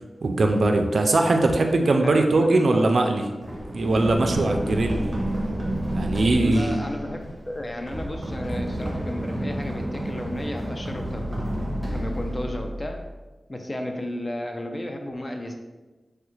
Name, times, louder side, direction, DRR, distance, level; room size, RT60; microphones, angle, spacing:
voice 1, 0.2-3.2 3.7-5.0 5.9-6.8, right 2 dB, 70° right, 4 dB, 0.3 m, -21 dB
voice 2, 1.9-2.9 6.3-11.4 11.9-13.0 13.5-15.5, left 1 dB, 30° left, 3 dB, 0.4 m, -33 dB
Run, 3.4-13.2, equal, 30° right, 0.7 m, -30 dB
3.2 x 2.3 x 3.0 m, 1.2 s
wide cardioid pair, 65°, 0 cm